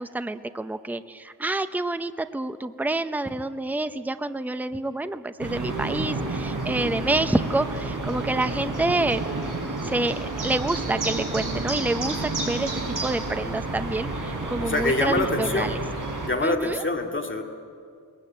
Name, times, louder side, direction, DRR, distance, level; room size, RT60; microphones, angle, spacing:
voice 1, 0.0-9.5 9.8-15.8 16.4-16.8, right 2 dB, 5° right, 10 dB, 0.7 m, -28 dB
sound 1, 5.4-16.3, right 2 dB, 50° right, 5.3 m, -30 dB
voice 2, 14.6-15.7 16.2-17.4, left 2 dB, 30° left, 3 dB, 2.2 m, -25 dB
22.0 x 19.5 x 8.8 m, 2.3 s
wide cardioid pair, 105°, 40 cm